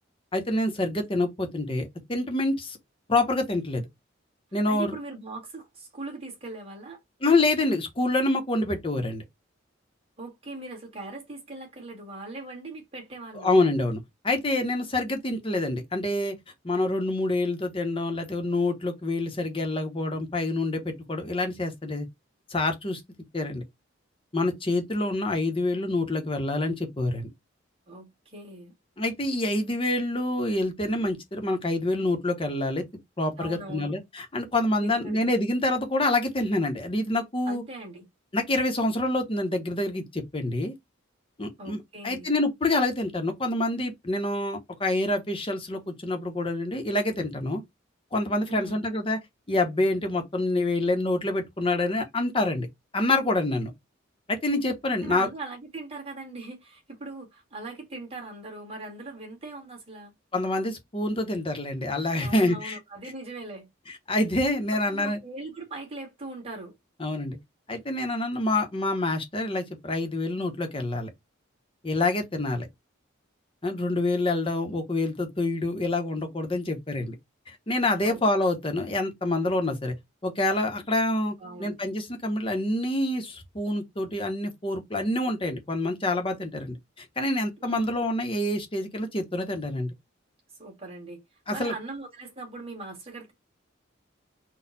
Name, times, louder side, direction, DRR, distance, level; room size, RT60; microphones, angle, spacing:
voice 1, 0.3-2.8 3.1-3.9 4.5-5.0 7.2-9.2 13.4-16.3 16.6-22.1 22.5-23.0 23.3-23.6 24.3-27.3 29.0-32.8 33.2-37.6 38.3-40.7 41.4-41.8 42.0-47.6 48.1-49.2 49.5-52.7 52.9-53.7 54.3-55.3 60.3-62.8 63.9-65.2 67.0-67.4 67.7-71.1 71.8-72.7 73.6-77.1 77.5-79.9 80.2-81.3 81.6-89.9 91.5-91.7, left 2 dB, 25° left, 0.9 m, -27 dB
voice 2, 4.7-7.0 10.2-13.6 27.9-28.7 33.4-33.9 34.8-35.3 37.4-38.1 41.6-42.3 48.5-48.8 55.0-60.1 62.2-63.7 64.7-66.7 78.0-78.2 81.4-81.7 87.6-87.9 90.6-91.2 91.5-93.3, right 2 dB, 30° right, 1.8 m, -40 dB
4.2 x 2.3 x 4.0 m
head